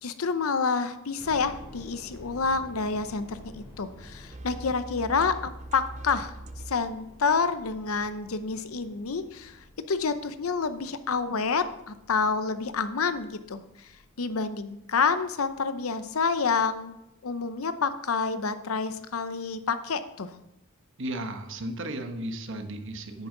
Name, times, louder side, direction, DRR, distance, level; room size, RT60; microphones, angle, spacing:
voice 1, 0.0-5.4 5.7-6.3 6.7-13.9 14.2-17.0 17.2-20.3, left 5 dB, 85° left, 12 dB, 0.7 m, -28 dB
sound 1, 1.2-16.0 16.3-16.4 17.0-17.3, equal, 20° left, 3.0 m, -51 dB
sound 2, 4.3-7.0, right 1 dB, 35° right, 0.6 m, -41 dB
voice 2, 21.0-23.3, right 1 dB, 65° right, 6 dB, 1.2 m, -34 dB
10.5 x 9.3 x 3.9 m, 0.87 s
head